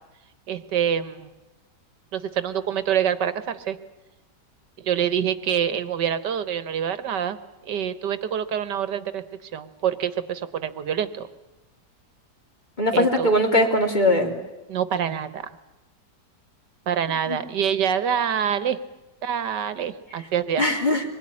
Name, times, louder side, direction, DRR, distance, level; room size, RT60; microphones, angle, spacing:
voice 1, 0.5-1.3 2.1-3.8 4.8-7.4 7.6-9.2 9.5-11.3 12.9-13.3 14.7-15.5 16.9-18.8 19.2-20.6, right 8 dB, 85° right, 13 dB, 1.8 m, -26 dB
voice 2, 12.8-14.3 17.3-17.4 20.6-21.0, left 1 dB, 25° left, 2 dB, 3.1 m, -20 dB
25.0 x 21.5 x 9.9 m, 1.0 s
omnidirectional pair, 1.8 m